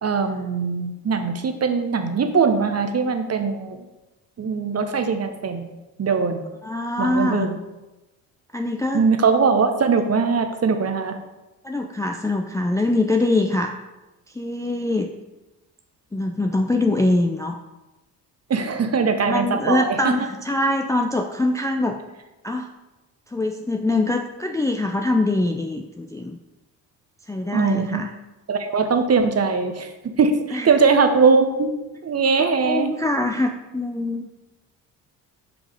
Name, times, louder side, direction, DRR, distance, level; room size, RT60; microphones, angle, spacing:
voice 1, 0.0-3.8 4.4-5.7 6.0-6.5 7.0-7.6 8.9-11.2 18.5-20.1 27.5-28.1 28.5-31.7 32.0-32.9, right 5 dB, 35° right, 7 dB, 0.9 m, -21 dB
voice 2, 6.6-7.5 8.5-9.1 11.6-13.7 14.3-15.1 16.1-17.6 19.3-22.0 22.4-22.7 23.3-26.4 27.3-28.1 30.5-30.7 32.4-34.3, left 2 dB, 5° left, 3 dB, 0.4 m, -23 dB
5.3 x 5.0 x 5.0 m, 1.0 s
hypercardioid pair, 50°, 46 cm